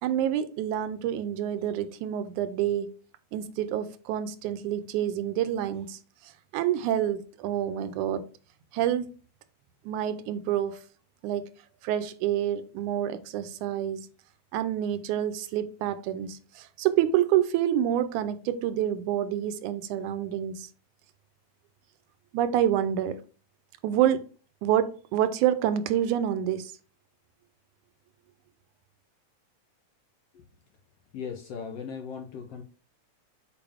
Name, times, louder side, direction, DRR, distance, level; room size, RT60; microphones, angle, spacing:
voice 1, 0.0-2.9 3.3-8.3 8.7-9.1 9.9-10.8 11.2-11.5 11.8-14.1 14.5-20.7 22.3-23.2 23.8-24.3 24.6-26.7, right 11 dB, 80° right, 2.0 m, -27 dB
voice 2, 31.1-32.6, left 6 dB, 70° left, 1.5 m, -38 dB
6.9 x 4.8 x 3.5 m
omnidirectional pair, 3.6 m